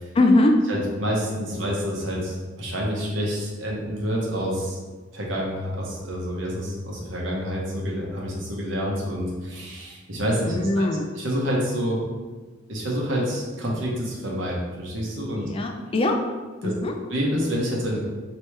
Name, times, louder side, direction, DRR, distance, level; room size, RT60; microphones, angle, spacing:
voice 1, 0.2-0.6 10.5-11.1 15.4-16.2 16.6-16.9, left 2 dB, 25° left, 3 dB, 0.3 m, -21 dB
voice 2, 0.7-4.8 5.1-10.9 11.1-12.0 12.7-15.5 16.6-16.7 17.1-18.0, equal, 65° right, -2 dB, 1.0 m, -28 dB
4.5 x 3.0 x 3.3 m, 1.4 s
head